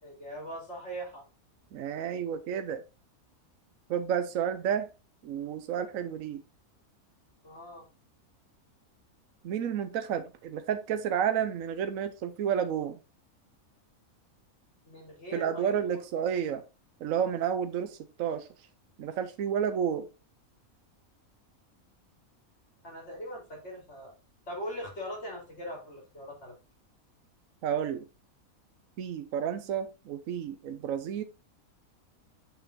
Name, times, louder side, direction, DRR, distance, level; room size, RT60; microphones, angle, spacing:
voice 1, 0.0-1.2 7.4-7.9 14.9-15.8 22.8-24.1 24.5-26.5, equal, 50° left, -2 dB, 4.0 m, -40 dB
voice 2, 1.7-2.8 3.9-4.9 5.2-6.4 9.4-13.0 15.3-16.6 17.0-18.5 19.0-20.1 27.6-28.1 29.0-31.2, right 8 dB, 70° right, 10 dB, 1.1 m, -31 dB
6.9 x 5.6 x 4.0 m, 0.30 s
omnidirectional pair, 1.5 m